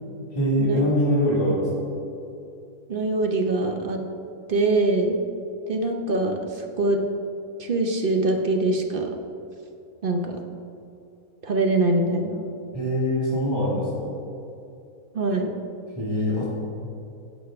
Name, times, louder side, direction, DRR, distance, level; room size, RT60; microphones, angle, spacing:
voice 1, 0.3-1.7 12.7-14.1 16.0-16.4, equal, 15° left, -7 dB, 1.4 m, -23 dB
voice 2, 2.9-4.0 4.5-5.3 5.7-7.0 7.6-9.1 10.0-10.4 11.4-12.5 15.1-15.5, right 2 dB, 50° right, 3 dB, 0.6 m, -23 dB
11.5 x 8.1 x 3.5 m, 2.7 s
omnidirectional pair, 1.7 m